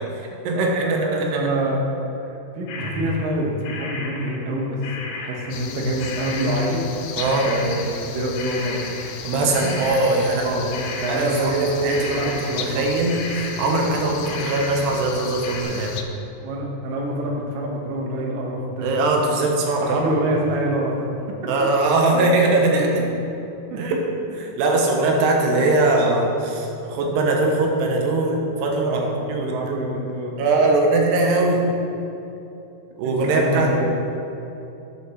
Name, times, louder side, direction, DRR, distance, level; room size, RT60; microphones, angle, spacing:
voice 1, 0.0-1.4 7.1-7.5 9.2-10.6 11.1-16.0 18.8-20.0 21.5-23.0 23.8-24.0 24.4-29.0 29.3-29.6 30.4-31.7 33.0-33.7, right 2 dB, 80° right, 1 dB, 3.2 m, -21 dB
voice 2, 0.5-1.9 2.2-4.8 5.1-6.8 7.4-8.8 10.3-12.9 16.4-18.9 19.8-21.1 21.8-21.9 22.7-22.8 23.7-23.8 28.8-30.3 33.0-33.8, right 1 dB, 65° right, -1 dB, 2.6 m, -26 dB
sound 1, 2.7-3.4 3.6-5.7 6.0-15.2 15.4-15.6, left 3 dB, 70° left, 2.5 m, -35 dB
sound 2, 5.5-16.0, left 7 dB, 85° left, 2.7 m, -35 dB
8.9 x 6.9 x 6.2 m, 2.8 s
omnidirectional pair, 4.8 m